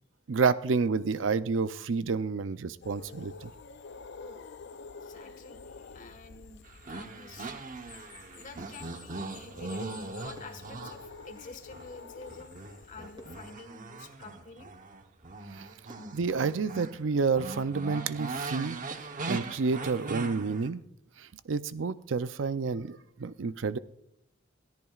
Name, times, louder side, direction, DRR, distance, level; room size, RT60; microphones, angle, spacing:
voice 1, 0.3-3.5 15.5-15.7 16.1-18.8 19.2-20.8 21.2-23.8, right 4 dB, 75° right, 13 dB, 0.5 m, -29 dB
sound 1, 2.8-13.5, left 5 dB, 65° left, 0.5 m, -49 dB
voice 2, 5.0-6.6 6.9-7.5 8.3-14.7, left 3 dB, 40° left, 8 dB, 1.5 m, -49 dB
sound 2, 6.6-11.9 12.3-17.0 17.3-20.7, right 3 dB, 45° right, 1.0 m, -40 dB
sound 3, 10.3-11.8 13.2-15.1 15.5-15.6 15.9-17.5 18.0-18.1 18.9-20.8 21.1-21.3, right 1 dB, 25° right, 3.7 m, -58 dB
21.0 x 14.0 x 2.4 m, 0.74 s
head